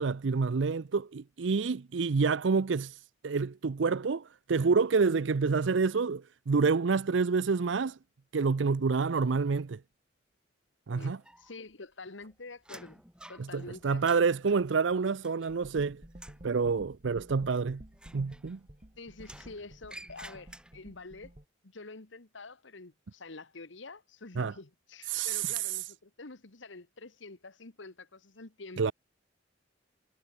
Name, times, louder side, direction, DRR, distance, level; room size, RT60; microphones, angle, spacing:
voice 1, 0.0-8.0 8.3-9.8 10.9-11.2 13.4-16.0 16.4-17.8 18.1-18.6 24.4-24.5 25.1-25.9 28.8-28.9, right 4 dB, 70° right, 0.5 m, -28 dB
voice 2, 10.9-13.0 13.3-14.2 19.0-21.3 21.6-28.9, left 3 dB, 75° left, 1.6 m, -47 dB
sound 1, 11.0-11.7 12.0-15.8 16.1-16.5 17.9-18.8 19.2-21.0, right 1 dB, 5° right, 7.3 m, -52 dB
sound 2, 15.5-21.4, right 1 dB, 35° right, 2.1 m, -52 dB
head